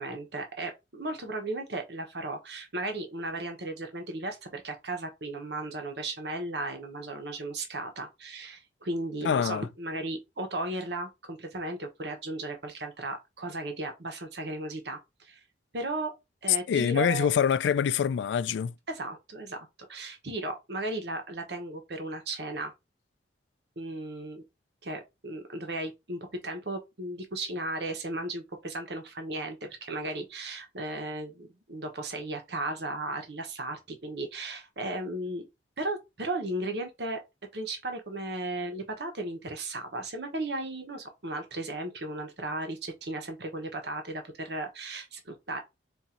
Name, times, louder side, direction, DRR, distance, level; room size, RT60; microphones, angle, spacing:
voice 1, 0.0-15.4 15.7-16.1 16.4-17.3 18.9-22.7 23.8-24.4 24.8-35.4 35.8-37.2 37.5-45.6, right 2 dB, 70° right, 1.1 m, -35 dB
voice 2, 9.2-9.6 16.7-18.7, left 7 dB, 90° left, 0.3 m, -25 dB
4.3 x 2.7 x 3.8 m
head